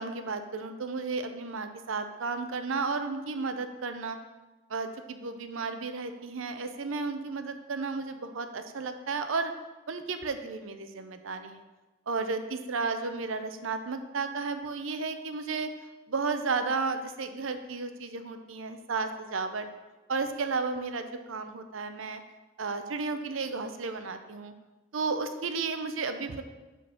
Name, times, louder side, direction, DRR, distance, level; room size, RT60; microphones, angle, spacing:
voice 1, 0.0-4.2 4.7-9.5 9.9-11.6 12.1-15.7 16.1-19.7 20.1-22.2 22.6-24.5 24.9-26.4, right 4 dB, 80° right, 8 dB, 0.6 m, -33 dB
7.5 x 3.9 x 6.1 m, 1.2 s
head